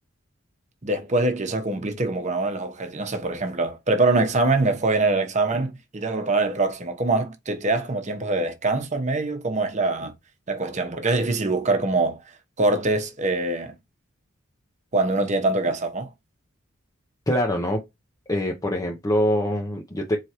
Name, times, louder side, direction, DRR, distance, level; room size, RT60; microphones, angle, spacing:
voice 1, 0.8-10.1 10.5-12.2 12.6-13.7 14.9-16.1, right 2 dB, 35° right, 0.9 m, -24 dB
voice 2, 17.3-17.9 18.3-20.2, equal, 15° left, 0.6 m, -24 dB
4.5 x 3.2 x 2.9 m
head